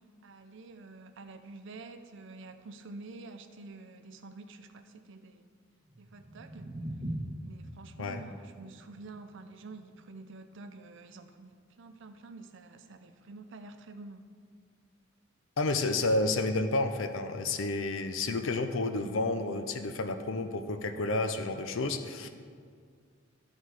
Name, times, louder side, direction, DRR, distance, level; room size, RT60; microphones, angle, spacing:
voice 1, 0.2-5.5 6.0-6.7 7.4-14.3 19.9-20.0 22.2-22.3, right 3 dB, 65° right, 8 dB, 0.6 m, -48 dB
sound 1, 5.8-12.0, right 1 dB, 30° right, 1.1 m, -43 dB
voice 2, 15.6-22.3, left 2 dB, 70° left, 8 dB, 0.6 m, -30 dB
12.0 x 4.2 x 4.8 m, 2.1 s
head